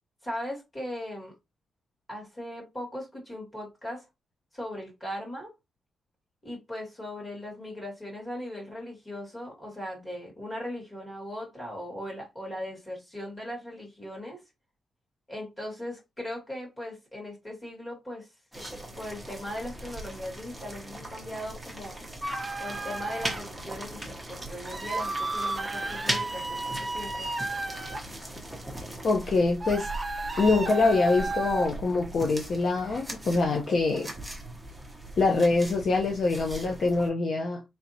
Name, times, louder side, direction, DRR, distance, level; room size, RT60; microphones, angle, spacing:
voice 1, 0.2-1.3 2.1-4.1 4.5-5.5 6.4-14.4 15.3-18.3 19.0-22.0 22.6-27.3, left 1 dB, 20° left, 2.1 m, -38 dB
sound 1, 18.5-37.1, right 1 dB, ahead, 1.0 m, -39 dB
sound 2, 22.2-23.4 24.6-28.0 29.6-31.7, right 2 dB, 20° right, 0.4 m, -33 dB
voice 2, 29.0-29.9 30.4-34.1 35.2-37.7, left 3 dB, 45° left, 0.6 m, -24 dB
4.1 x 3.3 x 2.8 m
wide cardioid pair, 175°, 0 cm